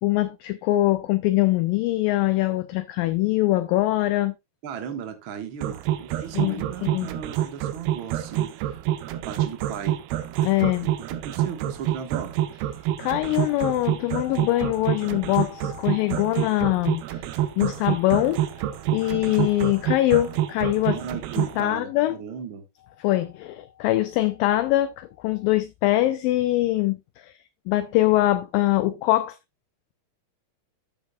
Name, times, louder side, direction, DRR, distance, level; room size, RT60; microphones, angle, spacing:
voice 1, 0.0-4.3 6.3-7.1 10.4-10.9 13.0-21.0 21.4-22.2 23.0-27.3 27.7-29.4, left 16 dB, 80° left, 2.0 m, -23 dB
voice 2, 4.6-8.8 9.1-10.0 10.8-12.3 20.9-22.6, right 7 dB, 60° right, 1.3 m, -37 dB
sound 1, 5.6-21.6, right 12 dB, 85° right, 2.9 m, -27 dB
13.5 x 7.3 x 2.3 m
omnidirectional pair, 4.5 m